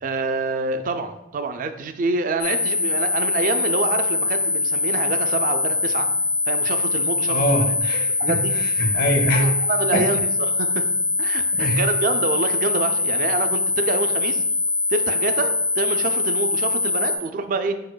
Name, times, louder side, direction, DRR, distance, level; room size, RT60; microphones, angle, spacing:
voice 1, 0.0-6.1 6.5-7.7 8.2-8.5 9.4-10.9 11.2-14.4 14.9-17.8, right 4 dB, 45° right, 9 dB, 0.3 m, -26 dB
sound 1, 2.4-17.2, left 3 dB, 70° left, 0.9 m, -23 dB
voice 2, 7.3-9.5 9.9-10.1 11.5-11.8, equal, 50° left, 5 dB, 0.6 m, -23 dB
4.8 x 4.4 x 2.2 m, 0.88 s
head